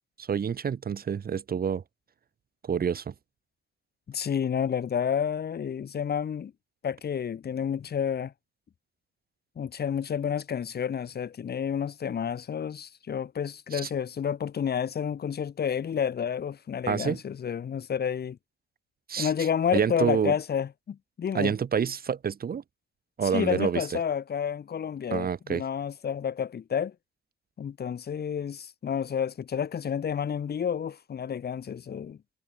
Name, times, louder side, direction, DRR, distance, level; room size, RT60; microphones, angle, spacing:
voice 1, 0.2-1.8 2.6-3.1 13.7-13.9 16.9-17.2 19.1-19.3 19.7-20.4 21.3-22.6 23.2-23.9 25.1-25.6, right 7 dB, 50° right, 5.0 m, -28 dB
voice 2, 4.1-6.5 6.8-8.3 9.6-18.4 19.2-21.5 23.2-26.9 27.6-32.2, left 8 dB, 55° left, 6.2 m, -30 dB
cardioid pair, 90°, 20 cm